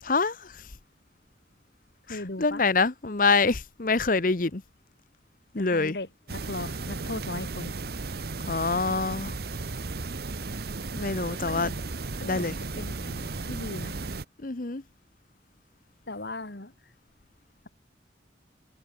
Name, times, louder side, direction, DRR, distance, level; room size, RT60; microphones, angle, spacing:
voice 1, 0.0-0.6 2.1-4.6 5.5-6.0 8.5-9.3 10.9-11.7 12.2-12.5 14.4-14.8, left 4 dB, 45° left, 0.9 m, -26 dB
voice 2, 2.1-2.7 5.5-7.8 11.4-11.8 12.2-14.0 16.1-16.7, left 2 dB, 60° left, 2.3 m, -38 dB
sound 1, 6.3-14.2, right 3 dB, 55° right, 1.0 m, -35 dB
head